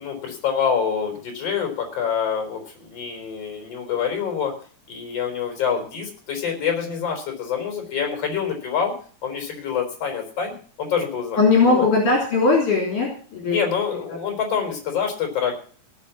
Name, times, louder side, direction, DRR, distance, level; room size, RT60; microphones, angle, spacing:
voice 1, 0.0-4.5 4.9-8.9 9.2-11.4 11.7-11.8 13.5-15.5, left 7 dB, 40° left, 3 dB, 5.1 m, -26 dB
voice 2, 11.4-13.6, left 3 dB, 55° left, 0 dB, 4.8 m, -19 dB
18.0 x 7.2 x 7.4 m, 0.43 s
omnidirectional pair, 4.5 m